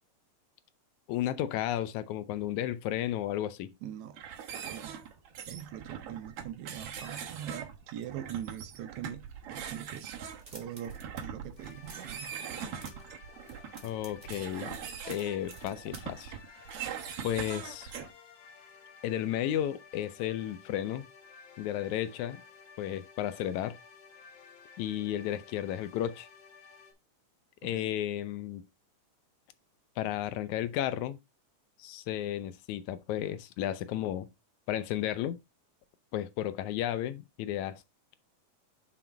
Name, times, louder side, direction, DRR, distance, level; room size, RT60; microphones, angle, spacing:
voice 1, 1.1-3.7 13.8-14.8 15.1-16.4 17.2-17.9 19.0-21.1 21.6-22.4 22.8-23.8 24.8-26.3 27.6-28.6 30.0-31.2 31.8-34.3 34.7-35.4 36.1-37.8, left 12 dB, 80° left, 1.9 m, -33 dB
voice 2, 3.8-4.2 4.6-5.0 5.5-10.2 10.5-12.7 27.6-27.9, right 10 dB, 75° right, 1.8 m, -42 dB
sound 1, 4.1-18.1, right 8 dB, 60° right, 1.8 m, -42 dB
sound 2, 10.3-11.2 11.5-12.1 12.5-13.1 13.4-16.2, right 2 dB, 20° right, 1.2 m, -52 dB
sound 3, 11.6-26.9, left 5 dB, 60° left, 2.3 m, -55 dB
6.0 x 5.0 x 4.3 m
omnidirectional pair, 3.5 m